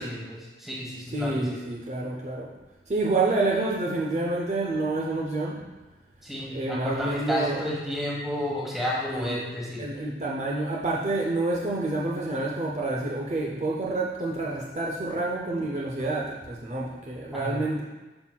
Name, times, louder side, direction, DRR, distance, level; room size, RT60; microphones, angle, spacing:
voice 1, 0.0-1.6 6.2-9.8 17.3-17.7, left 1 dB, ahead, -4 dB, 1.2 m, -32 dB
voice 2, 1.1-2.5 2.9-5.6 6.5-7.6 9.1-9.4 9.8-17.8, right 2 dB, 40° right, -3 dB, 0.6 m, -28 dB
8.6 x 5.7 x 2.3 m, 1.2 s
head